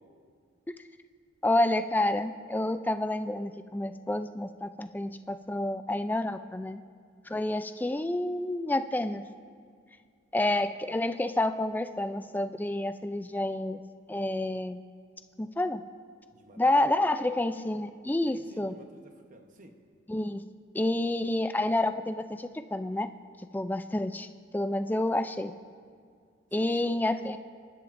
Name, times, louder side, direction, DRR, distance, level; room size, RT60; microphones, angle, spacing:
voice 1, 1.4-6.8 7.3-9.2 10.3-13.8 14.1-14.8 15.4-15.8 16.6-18.7 20.1-20.4 20.7-23.1 23.5-24.3 24.5-25.5 26.5-27.4, left 1 dB, 10° left, 9 dB, 0.3 m, -29 dB
voice 2, 16.3-16.6 17.1-17.3 18.3-19.8 26.5-26.9, right 2 dB, 40° right, 5 dB, 1.0 m, -51 dB
27.0 x 11.0 x 2.6 m, 2.1 s
head